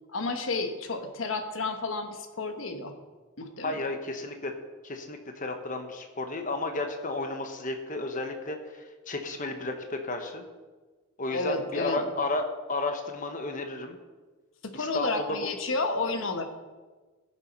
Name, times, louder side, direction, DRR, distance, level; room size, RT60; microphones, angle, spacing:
voice 1, 0.1-2.9 3.4-3.9 11.3-12.1 14.6-16.4, left 3 dB, 75° left, 6 dB, 1.1 m, -31 dB
voice 2, 3.6-4.5 4.8-10.4 11.2-14.0 14.7-15.2, left 2 dB, 40° left, 5 dB, 1.1 m, -33 dB
17.0 x 7.3 x 5.3 m, 1.3 s
head